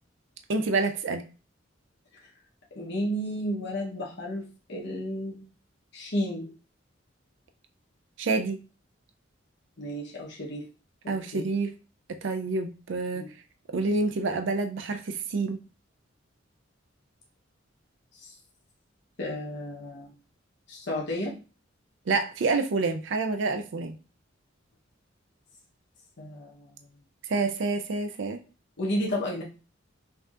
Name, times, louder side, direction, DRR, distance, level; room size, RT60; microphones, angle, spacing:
voice 1, 0.5-1.2 8.2-8.6 11.1-11.7 12.1-13.2 13.7-15.6 22.1-24.0 27.3-28.4, right 3 dB, 65° right, 7 dB, 0.4 m, -28 dB
voice 2, 2.7-5.4 5.9-6.5 9.8-10.7 11.0-11.4 13.1-13.3 18.1-18.3 19.2-20.1 20.7-21.3 26.2-26.7 28.8-29.4, equal, 60° left, -3 dB, 0.9 m, -32 dB
5.6 x 2.7 x 2.4 m, 0.34 s
head